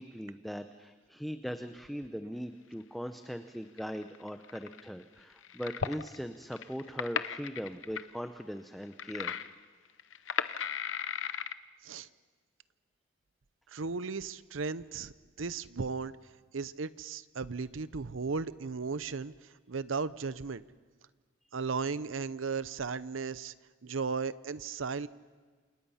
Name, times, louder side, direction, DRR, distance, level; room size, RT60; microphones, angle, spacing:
voice 1, 0.0-9.4, equal, ahead, 7 dB, 0.7 m, -40 dB
sound 1, 3.8-4.9 5.4-6.2 6.5-8.1 8.4-8.5 8.8-9.6 10.0-11.5, left 7 dB, 80° left, 0.8 m, -35 dB
voice 2, 13.7-15.1 15.4-16.1 16.5-19.3 19.7-20.6 21.5-23.5 23.8-25.1, right 4 dB, 90° right, 16 dB, 0.7 m, -35 dB
28.5 x 27.5 x 5.7 m, 1.5 s
head